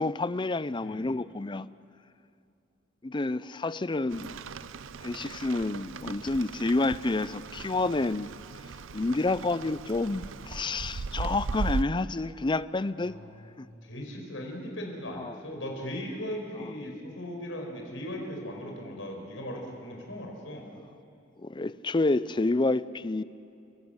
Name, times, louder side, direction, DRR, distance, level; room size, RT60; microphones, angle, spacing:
voice 1, 0.0-1.7 3.0-4.3 5.0-8.3 8.9-13.2 13.6-13.7 15.2-15.3 21.4-23.2, left 2 dB, 25° left, 17 dB, 0.5 m, -29 dB
voice 2, 0.8-1.1 13.0-20.7, equal, 85° left, 1 dB, 5.2 m, -38 dB
Rain, 4.1-11.8, right 4 dB, 90° right, 0.6 m, -38 dB
29.0 x 17.5 x 8.1 m, 2.6 s
head